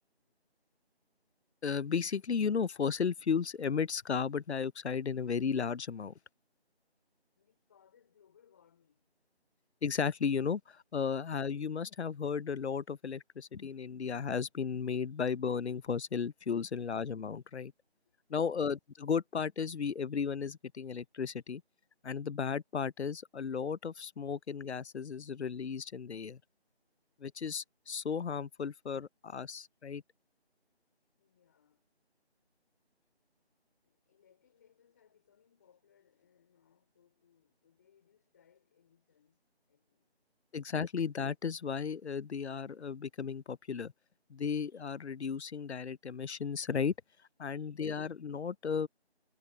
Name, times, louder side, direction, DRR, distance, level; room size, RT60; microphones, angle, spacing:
voice 1, 1.6-6.1 9.8-10.6 10.9-17.7 18.3-18.8 19.1-21.6 22.0-26.4 27.2-30.0 40.5-43.9 44.3-46.9 47.4-48.9, left 6 dB, 85° left, 0.6 m, -34 dB
voice 2, 7.4-9.1 18.0-18.1 31.2-31.9 33.8-40.2, left 8 dB, 15° left, 3.7 m, -68 dB
figure-of-eight pair, 170°, 32 cm